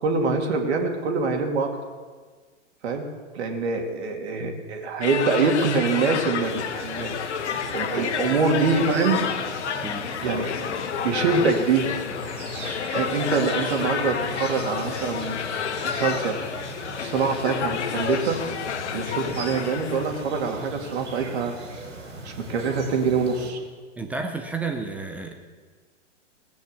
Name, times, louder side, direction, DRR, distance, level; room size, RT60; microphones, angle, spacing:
voice 1, 0.0-1.7 2.8-3.0 3.3-7.2 7.7-9.2 10.2-10.6 11.0-11.9 12.9-15.3 15.8-16.4 16.9-18.4 18.9-21.5 22.2-23.6, right 4 dB, 60° right, 3 dB, 2.7 m, -24 dB
sound 1, 5.0-20.2, left 7 dB, 65° left, 1.4 m, -30 dB
sound 2, 6.4-23.5, right 1 dB, 80° right, 3.9 m, -38 dB
voice 2, 24.0-25.3, right 4 dB, 5° right, 5 dB, 0.3 m, -31 dB
17.5 x 9.3 x 6.9 m, 1.5 s
hypercardioid pair, 120°, 38 cm